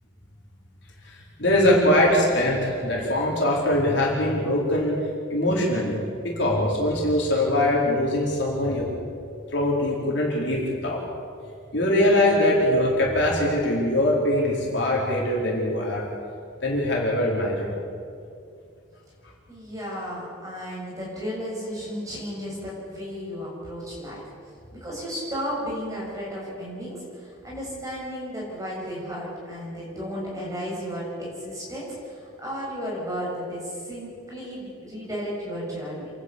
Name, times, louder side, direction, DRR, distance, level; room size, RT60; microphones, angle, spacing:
voice 1, 1.4-5.0 5.3-6.0 6.2-8.9 9.5-11.0 11.7-16.1 16.6-17.7, left 1 dB, 55° left, -3 dB, 4.5 m, -22 dB
voice 2, 19.5-24.2 24.7-36.1, equal, 15° right, -5 dB, 6.7 m, -34 dB
28.0 x 11.5 x 8.5 m, 2.4 s
head